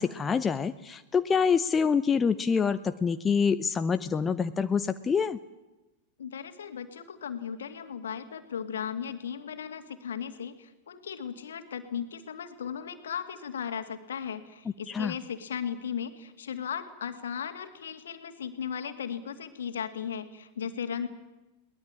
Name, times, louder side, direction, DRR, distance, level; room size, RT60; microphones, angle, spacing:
voice 1, 0.0-5.4 14.9-15.1, left 6 dB, 20° left, 11 dB, 0.8 m, -26 dB
voice 2, 6.2-21.1, left 7 dB, 65° left, 9 dB, 2.3 m, -36 dB
22.0 x 19.5 x 8.8 m, 1.0 s
figure-of-eight pair, 90°, 0 cm